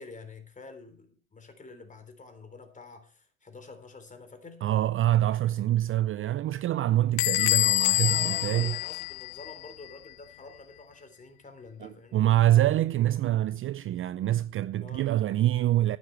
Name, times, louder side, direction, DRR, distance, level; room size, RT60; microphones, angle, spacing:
voice 1, 0.0-4.6 8.0-12.4 14.8-15.1, left 3 dB, 20° left, 3.5 m, -47 dB
voice 2, 4.6-8.8 11.8-16.0, right 13 dB, 35° right, 0.5 m, -25 dB
Bell / Squeak, 7.2-9.7, left 21 dB, 55° left, 0.5 m, -26 dB
11.5 x 9.9 x 4.5 m
supercardioid pair, 85°, 35 cm